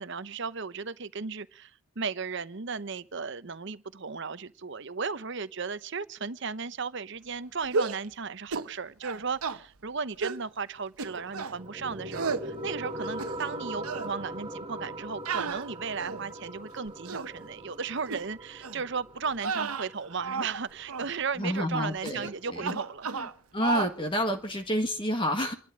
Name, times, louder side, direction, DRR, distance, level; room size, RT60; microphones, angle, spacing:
voice 1, 0.0-1.7 2.0-23.1, right 5 dB, 55° right, 0.8 m, -35 dB
sound 1, 7.7-8.1 8.5-8.7 9.0-9.6 10.2-10.4 11.0-11.6 12.1-12.5 13.0-13.6 13.8-14.1 15.3-16.3 16.9-17.3 18.1-18.2 18.6-18.8 19.3-20.6 20.9-21.1 22.0-22.3 22.6-23.3 23.6-23.9, right 5 dB, 85° right, 1.0 m, -33 dB
sound 2, 11.0-22.0, right 1 dB, 20° right, 1.3 m, -41 dB
voice 2, 21.4-22.8 23.1-23.3 23.5-25.5, left 1 dB, 25° left, 1.6 m, -29 dB
29.0 x 12.0 x 3.7 m
head